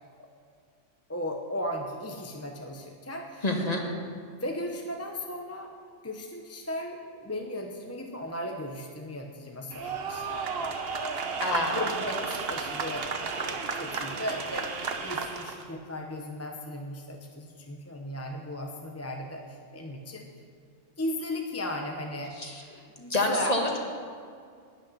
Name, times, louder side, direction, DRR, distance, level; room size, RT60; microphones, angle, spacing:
voice 1, 1.1-3.4 4.3-5.8 6.0-10.7 11.7-20.3 21.0-22.4 22.7-23.8, left 1 dB, 15° left, 2 dB, 0.7 m, -36 dB
voice 2, 3.4-3.8 11.4-11.8 22.4-22.6 23.1-23.8, left 1 dB, 30° left, 1 dB, 1.6 m, -27 dB
sound 1, 9.7-15.6, right 5 dB, 55° right, 1.1 m, -33 dB
12.0 x 6.5 x 9.6 m, 2.3 s
omnidirectional pair, 1.3 m